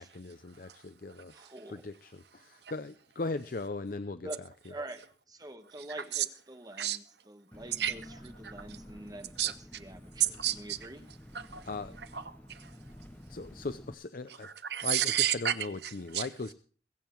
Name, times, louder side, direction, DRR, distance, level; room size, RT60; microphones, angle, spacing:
voice 1, 0.0-1.3 1.7-4.3 11.7-12.0 13.3-14.5 14.8-16.5, left 3 dB, 50° left, 0.6 m, -38 dB
voice 2, 1.3-1.9 4.2-11.1, right 1 dB, 20° right, 1.2 m, -46 dB
Engine, 7.5-13.9, left 1 dB, 10° left, 0.7 m, -51 dB
voice 3, 10.2-10.8 11.3-11.7 12.1-12.7 14.4-16.3, right 11 dB, 65° right, 0.9 m, -32 dB
22.5 x 7.6 x 4.5 m
head